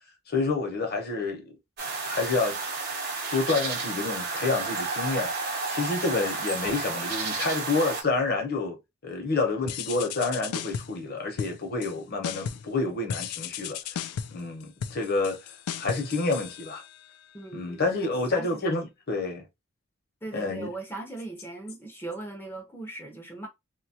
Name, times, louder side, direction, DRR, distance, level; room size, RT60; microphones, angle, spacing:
voice 1, 0.3-1.4 2.1-2.6 3.3-5.3 5.7-8.8 9.0-15.4 15.8-16.8 17.5-19.4 20.3-20.7, left 3 dB, 45° left, 0.9 m, -28 dB
sound 1, 1.8-8.0, right 3 dB, 50° right, 0.8 m, -31 dB
sound 2, 9.7-11.0 11.4-12.0 12.2-12.7 13.1-17.1, left 8 dB, 90° left, 0.3 m, -35 dB
voice 2, 17.3-18.7 20.2-23.5, right 2 dB, 10° left, 0.6 m, -39 dB
2.8 x 2.3 x 2.7 m
head